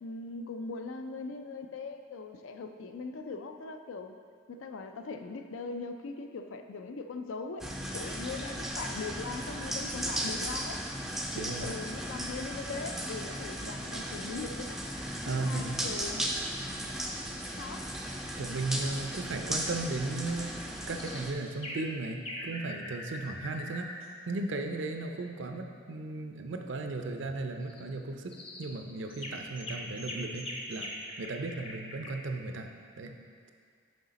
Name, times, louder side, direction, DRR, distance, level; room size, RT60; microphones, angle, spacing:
voice 1, 0.0-4.2 4.5-10.8 11.3-14.8 15.3-16.3 17.6-17.9, left 4 dB, 80° left, 7 dB, 0.4 m, -40 dB
sound 1, 7.6-21.3, equal, ahead, 0.3 m, -36 dB
voice 2, 11.3-11.8 15.2-15.8 18.4-20.5 20.9-23.9 24.3-28.3 28.6-30.9 31.2-32.7 33.0-33.1, right 2 dB, 65° right, 5 dB, 0.5 m, -35 dB
sound 2, 13.0-20.6, left 1 dB, 60° left, 1.0 m, -58 dB
sound 3, 20.2-20.3 20.9-21.3 21.6-21.9 22.3-24.1 27.6-27.8 28.3-28.7 29.1-32.1, left 1 dB, 30° left, 0.7 m, -42 dB
6.4 x 4.9 x 4.0 m, 2.1 s
head